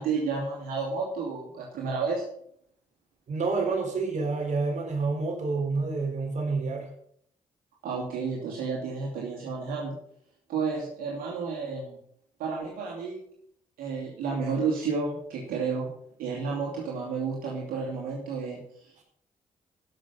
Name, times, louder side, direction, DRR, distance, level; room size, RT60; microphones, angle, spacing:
voice 1, 0.0-2.2 7.8-10.0 10.5-12.0 12.4-13.2 13.8-15.9 16.2-19.0, right 5 dB, 90° right, -3 dB, 2.6 m, -31 dB
voice 2, 3.3-6.9, right 4 dB, 60° right, 2 dB, 4.3 m, -28 dB
14.5 x 6.2 x 5.5 m, 0.67 s
cardioid pair, 65°, 14 cm